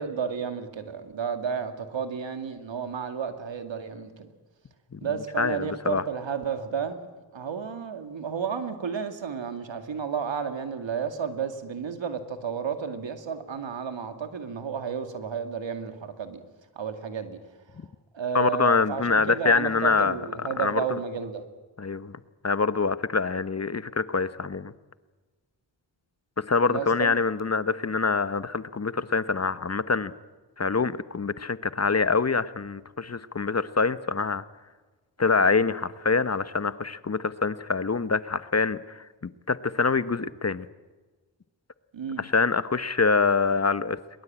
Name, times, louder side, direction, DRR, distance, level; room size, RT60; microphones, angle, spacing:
voice 1, 0.0-4.3 5.0-7.1 7.3-16.4 16.8-17.4 18.1-21.4 26.7-27.2 41.9-42.2, right 6 dB, 75° right, 7 dB, 2.4 m, -32 dB
voice 2, 5.4-6.0 18.3-20.2 20.6-20.8 21.8-22.2 22.4-24.7 26.4-30.1 30.6-34.4 35.2-39.0 39.5-40.7 42.2-44.0, left 4 dB, 35° left, 15 dB, 1.0 m, -25 dB
22.0 x 21.0 x 8.8 m, 1.3 s
cardioid pair, 45°, 46 cm